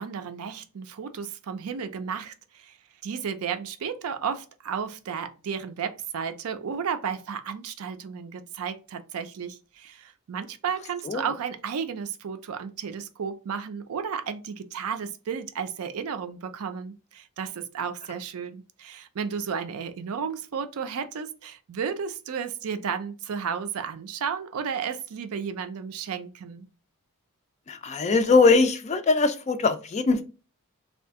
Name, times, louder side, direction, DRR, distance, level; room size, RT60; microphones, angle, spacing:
voice 1, 0.0-2.8 3.0-26.7, right 6 dB, 70° right, 0.4 m, -33 dB
voice 2, 27.7-30.2, left 4 dB, 30° left, 0.3 m, -21 dB
2.7 x 2.4 x 3.5 m
head